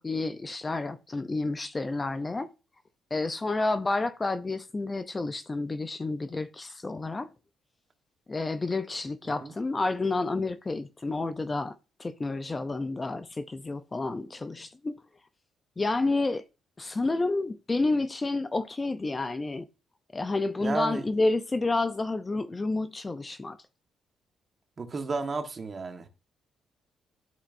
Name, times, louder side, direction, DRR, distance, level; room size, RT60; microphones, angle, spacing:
voice 1, 0.0-2.5 3.1-7.3 8.3-11.7 12.0-15.0 15.8-16.4 16.8-19.7 20.1-23.6, left 3 dB, 25° left, 0.5 m, -30 dB
voice 2, 20.6-21.0 24.8-26.1, right 4 dB, 35° right, 1.3 m, -32 dB
11.0 x 4.3 x 2.6 m
cardioid pair, 90°, 0 cm